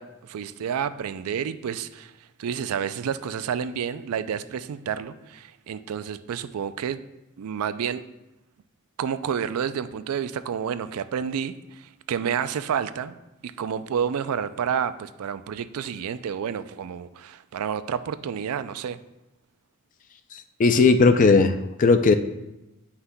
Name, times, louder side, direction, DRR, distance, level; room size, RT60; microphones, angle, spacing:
voice 1, 0.0-2.1 2.4-7.0 7.4-8.0 9.0-13.1 13.4-19.0, right 7 dB, 75° right, 13 dB, 0.4 m, -30 dB
voice 2, 20.6-22.2, left 4 dB, 35° left, 10 dB, 0.3 m, -17 dB
9.6 x 5.7 x 2.2 m, 0.95 s
head